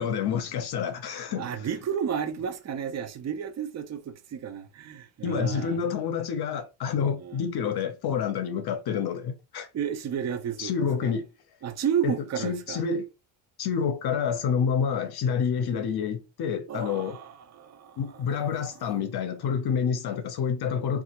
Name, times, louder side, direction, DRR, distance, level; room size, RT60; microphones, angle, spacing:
voice 1, 0.0-1.5 5.2-9.7 10.6-11.3 12.0-12.1 12.4-13.1 13.6-17.2 18.0-21.0, left 7 dB, 55° left, 0.7 m, -28 dB
voice 2, 1.3-5.8 7.2-7.4 9.7-11.1 11.6-12.8 16.7-18.8, right 8 dB, 35° right, 0.5 m, -32 dB
3.3 x 2.4 x 2.8 m
cardioid pair, 135°, 46 cm